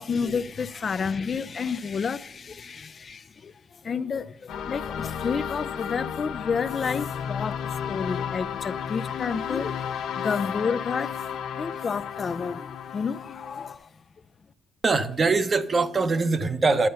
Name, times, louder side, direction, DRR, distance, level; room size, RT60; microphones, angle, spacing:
voice 1, 0.0-11.2 11.5-13.9, left 5 dB, 45° left, 0.4 m, -30 dB
sound 1, 4.5-13.7, left 8 dB, 85° left, 1.1 m, -33 dB
voice 2, 14.8-16.9, right 3 dB, 35° right, 1.0 m, -22 dB
11.0 x 9.2 x 5.5 m
cardioid pair, 90°, 0 cm